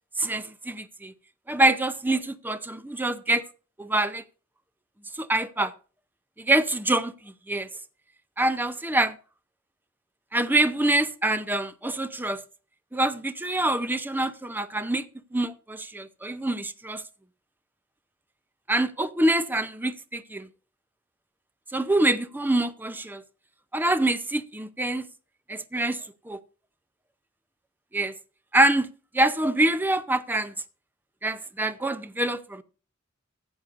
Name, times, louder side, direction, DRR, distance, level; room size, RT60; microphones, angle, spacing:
voice 1, 0.2-1.1 1.5-3.4 3.8-4.2 5.1-5.7 6.4-7.7 8.4-9.2 10.3-12.4 12.9-15.0 15.3-17.0 18.7-20.5 21.7-23.2 23.7-25.1 25.5-26.4 27.9-28.1 28.5-28.9 29.1-30.5 31.2-32.6, right 1 dB, 10° right, 0.6 m, -25 dB
15.5 x 8.0 x 2.5 m
head